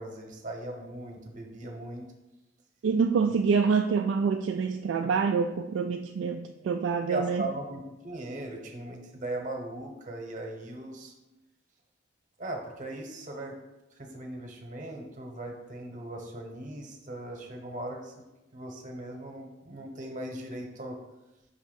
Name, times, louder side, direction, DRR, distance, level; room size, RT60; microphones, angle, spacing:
voice 1, 0.0-2.1 3.3-3.4 6.6-6.7 7.0-11.1 12.4-13.6 13.9-18.2 18.5-21.0, right 1 dB, 45° right, 2 dB, 1.0 m, -38 dB
voice 2, 2.8-7.4, right 5 dB, 85° right, 5 dB, 0.3 m, -26 dB
5.7 x 3.1 x 5.2 m, 1.0 s
head